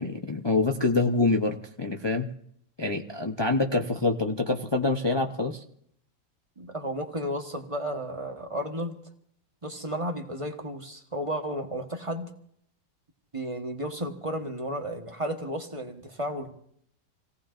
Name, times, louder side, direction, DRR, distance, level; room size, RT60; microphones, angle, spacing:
voice 1, 0.0-2.3 2.8-5.6, left 3 dB, 40° left, 2 dB, 0.3 m, -26 dB
voice 2, 6.6-9.0 9.6-12.3 13.3-16.5, equal, 20° right, 4 dB, 1.1 m, -33 dB
28.5 x 17.5 x 2.6 m, 0.67 s
omnidirectional pair, 1.9 m